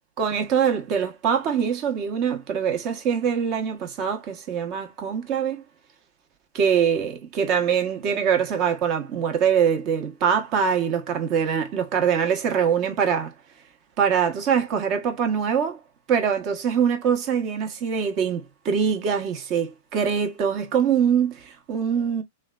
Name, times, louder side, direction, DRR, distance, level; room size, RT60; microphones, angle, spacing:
voice 1, 0.2-5.6 6.5-13.3 14.0-15.8 16.1-22.2, right 7 dB, 40° right, 0.9 m, -23 dB
3.2 x 2.3 x 2.3 m
hypercardioid pair, 125°, 0 cm